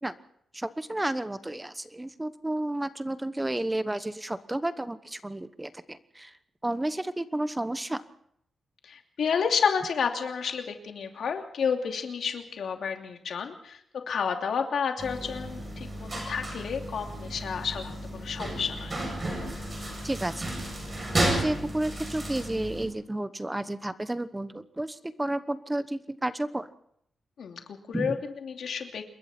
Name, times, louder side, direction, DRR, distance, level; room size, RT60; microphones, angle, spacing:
voice 1, 0.5-6.3 6.6-8.0 20.0-20.5 21.2-26.7 27.9-28.2, right 1 dB, 10° right, 12 dB, 1.0 m, -31 dB
voice 2, 8.8-13.8 14.1-19.0 27.4-29.0, left 6 dB, 70° left, 3 dB, 2.8 m, -30 dB
sound 1, 15.0-22.9, right 1 dB, 25° right, 7.7 m, -33 dB
27.5 x 22.0 x 4.4 m, 0.69 s
wide cardioid pair, 135°, 0 cm